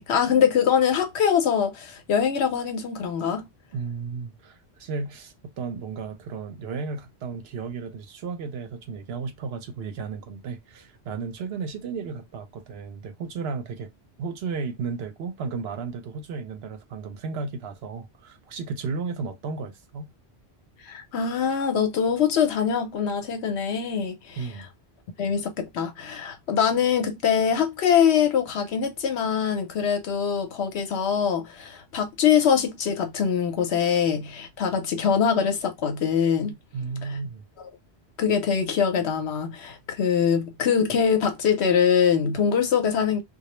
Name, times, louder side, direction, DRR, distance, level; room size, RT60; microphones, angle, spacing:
voice 1, 0.0-3.5 20.9-24.4 25.2-36.5 38.2-43.2, left 7 dB, 75° left, 0.9 m, -23 dB
voice 2, 3.7-13.9 14.2-20.1 24.4-24.7 36.7-37.4, right 5 dB, 70° right, 0.8 m, -34 dB
2.3 x 2.0 x 2.9 m
omnidirectional pair, 1.1 m